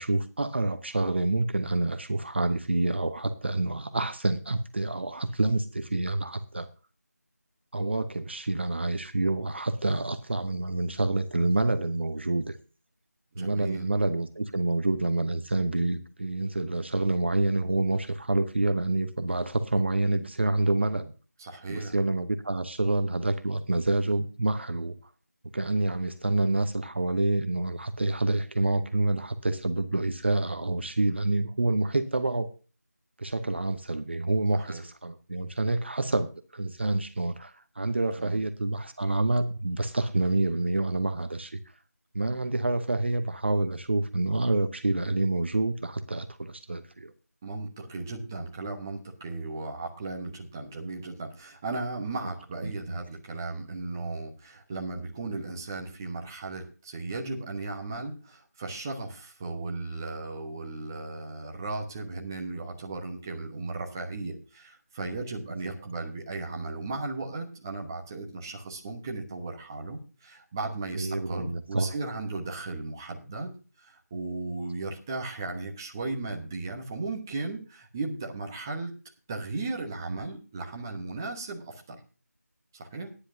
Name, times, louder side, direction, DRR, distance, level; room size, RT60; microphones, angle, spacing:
voice 1, 0.0-6.7 7.7-12.6 13.3-21.1 21.7-25.0 25.5-32.5 33.2-41.6 42.1-47.1 52.6-53.0 70.9-71.9, right 2 dB, 40° right, 10 dB, 0.8 m, -27 dB
voice 2, 13.4-13.9 21.4-21.9 34.5-34.8 38.2-38.4 47.4-73.5 73.8-78.9 79.3-82.0 82.7-83.1, right 3 dB, 10° right, 0 dB, 1.0 m, -36 dB
16.0 x 10.0 x 2.7 m, 0.35 s
figure-of-eight pair, 165°, 9 cm